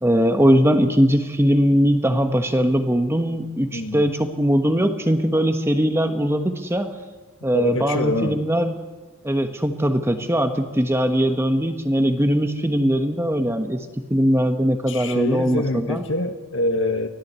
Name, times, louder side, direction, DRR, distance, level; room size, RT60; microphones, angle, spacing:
voice 1, 0.0-6.9 7.4-8.8 9.2-16.0, equal, 10° right, 6 dB, 1.3 m, -20 dB
voice 2, 3.7-4.0 7.5-8.3 14.9-17.1, left 1 dB, 60° left, 6 dB, 1.9 m, -25 dB
24.5 x 16.5 x 8.3 m, 1.3 s
head